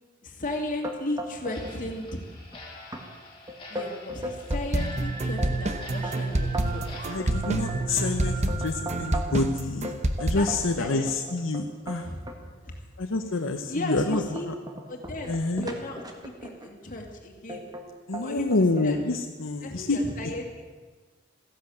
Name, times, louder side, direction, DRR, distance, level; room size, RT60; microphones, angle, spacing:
voice 1, 0.2-2.2 3.7-7.1 10.4-11.1 12.0-12.8 13.7-14.5 14.9-17.6 18.2-19.0 19.6-20.4, left 1 dB, 45° left, 2 dB, 2.4 m, -35 dB
sound 1, 0.8-1.8 2.0-2.6 2.9-3.0 3.5-4.7 5.1-9.5 9.8-12.4 13.0-13.2 13.6-16.7 17.5-17.9 18.1-18.9, right 1 dB, 20° right, 1.5 m, -37 dB
Clock, 1.5-8.7 9.0-9.1 9.6-9.7 10.2-10.3 10.8-10.9 11.4-11.5 12.0-12.1, left 3 dB, 25° left, 3.1 m, -48 dB
sound 2, 4.5-10.3, right 2 dB, 35° right, 1.0 m, -28 dB
voice 2, 7.1-12.1 13.0-14.5 15.3-15.7 18.1-20.0, left 3 dB, 80° left, 5 dB, 0.9 m, -28 dB
14.5 x 10.5 x 7.7 m, 1.4 s
head